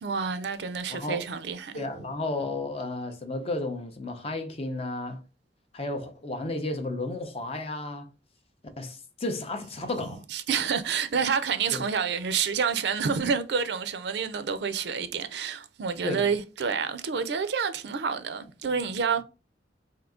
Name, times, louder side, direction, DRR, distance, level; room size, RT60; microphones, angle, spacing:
voice 1, 0.0-1.8 10.3-19.2, right 6 dB, 65° right, 0.4 m, -28 dB
voice 2, 0.9-1.3 1.7-5.2 5.7-8.1 8.8-10.2 11.7-11.8 16.0-16.3, left 2 dB, 35° left, 0.5 m, -33 dB
3.6 x 2.7 x 3.5 m
head